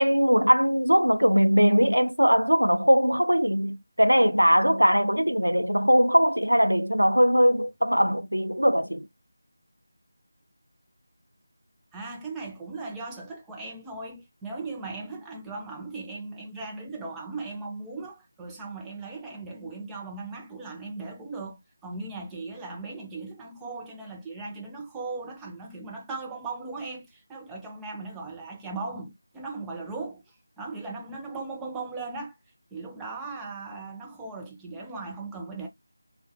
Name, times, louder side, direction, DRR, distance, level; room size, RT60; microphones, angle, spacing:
voice 1, 0.0-9.1, equal, 85° right, 0.4 m, -21 dB
voice 2, 11.9-32.4 32.7-35.7, right 3 dB, 5° right, 0.4 m, -38 dB
3.3 x 2.1 x 2.6 m
figure-of-eight pair, 165°, 0 cm